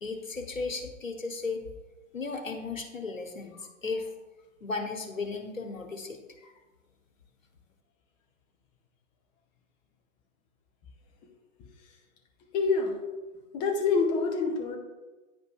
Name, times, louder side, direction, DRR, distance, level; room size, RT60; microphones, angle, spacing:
voice 1, 0.0-1.6 2.1-3.5 3.8-4.1 4.6-6.2, left 4 dB, 80° left, 4 dB, 1.1 m, -35 dB
voice 2, 12.5-13.0 13.5-14.8, left 4 dB, 15° left, 2 dB, 0.5 m, -26 dB
9.8 x 5.1 x 2.4 m, 1.2 s
figure-of-eight pair, 115°, 39 cm